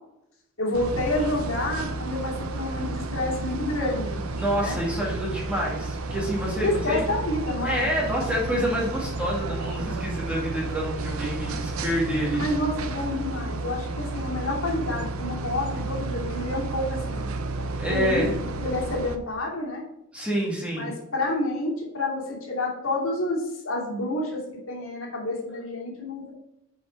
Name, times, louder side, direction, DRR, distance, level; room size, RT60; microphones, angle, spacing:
voice 1, 0.6-4.2 4.6-4.8 6.6-7.9 12.3-17.3 17.9-18.3 18.6-19.8 20.7-24.4 24.7-26.3, left 2 dB, 70° left, -3 dB, 2.7 m, -29 dB
sound 1, 0.7-19.2, right 2 dB, 85° right, 0.8 m, -32 dB
voice 2, 4.4-7.0 7.6-12.4 17.8-18.3 20.1-20.9, equal, 5° right, -4 dB, 2.3 m, -27 dB
7.7 x 5.2 x 4.5 m, 0.82 s
head